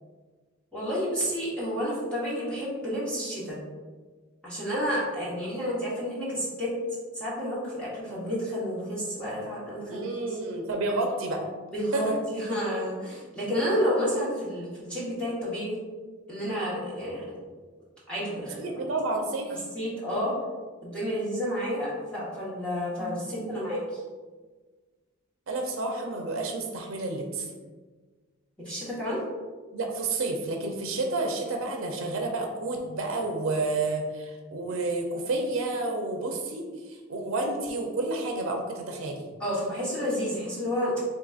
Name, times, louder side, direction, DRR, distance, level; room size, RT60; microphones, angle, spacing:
voice 1, 0.7-3.6 4.4-6.7 7.1-10.1 11.7-15.8 16.3-17.4 18.1-18.7 19.5-20.3 20.8-24.0 28.6-29.2 39.4-41.0, equal, 5° left, -9 dB, 1.0 m, -30 dB
voice 2, 9.9-11.4 11.9-12.2 18.6-19.6 23.0-23.6 25.5-27.5 29.7-36.6 37.1-39.3, right 2 dB, 75° right, 2 dB, 0.5 m, -30 dB
3.7 x 3.3 x 2.4 m, 1.4 s
head